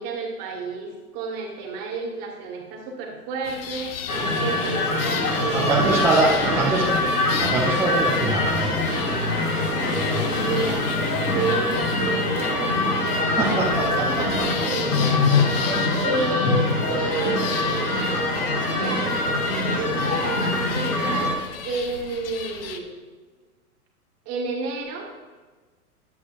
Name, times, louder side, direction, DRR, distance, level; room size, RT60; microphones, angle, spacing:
voice 1, 0.0-4.0 4.4-6.0 6.2-7.0 10.2-11.0 11.3-15.3 16.0-21.4 21.6-23.0 24.3-25.1, right 3 dB, 35° right, 0 dB, 1.8 m, -31 dB
sound 1, 3.4-22.8, left 7 dB, 40° left, 0.7 m, -36 dB
sound 2, 4.1-21.3, left 2 dB, 80° left, 2.2 m, -24 dB
voice 2, 5.3-7.0 7.4-8.9 13.4-14.4, right 3 dB, 5° right, -6 dB, 0.4 m, -23 dB
10.5 x 7.8 x 2.6 m, 1.4 s
figure-of-eight pair, 105°, 46 cm